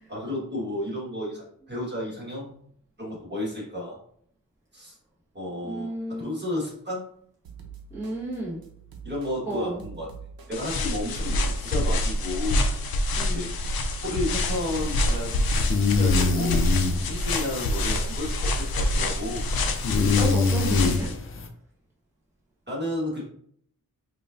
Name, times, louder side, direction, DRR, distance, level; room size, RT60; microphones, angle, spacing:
voice 1, 0.1-2.6 3.0-4.0 4.7-5.0 5.3-5.9 6.2-7.1 9.0-10.1 10.5-12.6 13.3-13.7 14.0-16.6 17.0-19.4 20.7-20.8 22.7-23.2, left 1 dB, 30° right, -4 dB, 1.5 m, -32 dB
voice 2, 5.6-6.3 7.9-8.6 9.4-9.8 13.1-13.4 20.1-21.1, right 1 dB, 10° right, -8 dB, 1.1 m, -32 dB
sound 1, 7.4-16.6, right 6 dB, 85° right, 0.7 m, -46 dB
sound 2, 10.5-21.1, left 1 dB, 85° left, 0.5 m, -26 dB
sound 3, 14.3-21.5, left 4 dB, 40° left, 0.4 m, -27 dB
5.0 x 2.4 x 2.5 m, 0.64 s
wide cardioid pair, 115°, 35 cm